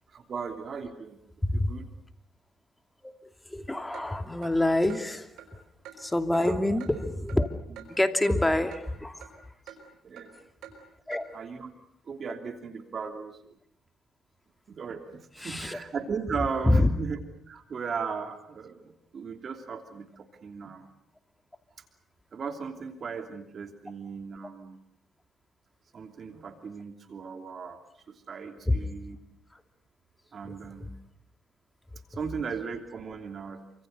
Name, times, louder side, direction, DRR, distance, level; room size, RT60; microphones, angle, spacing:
voice 1, 0.1-1.2 1.5-1.9 6.4-6.8 10.0-10.3 11.3-11.8 12.1-13.4 14.7-17.2 17.5-20.9 22.3-24.8 25.9-27.8 28.1-29.2 30.3-30.9 32.1-33.6, right 5 dB, 50° right, 7 dB, 3.0 m, -37 dB
voice 2, 3.0-5.6 6.0-7.5 7.9-9.4 11.1-11.3 15.4-15.8 16.4-16.9 28.7-28.9 29.5-29.6 30.4-30.5 30.8-30.9, left 1 dB, 10° left, 8 dB, 2.6 m, -27 dB
Clock, 3.9-4.1 4.4-4.5 4.9-5.0 5.4-5.5 5.8-6.0 6.3-6.4 6.8-6.9 7.3-7.4 7.8-7.9 8.2-8.4 8.7-8.8 9.2-9.3 9.7-9.8 10.2-10.3 10.6-10.7 11.1-11.2, right 11 dB, 85° right, 5.1 m, -46 dB
28.5 x 25.5 x 6.7 m, 0.71 s
cardioid pair, 90°, 0 cm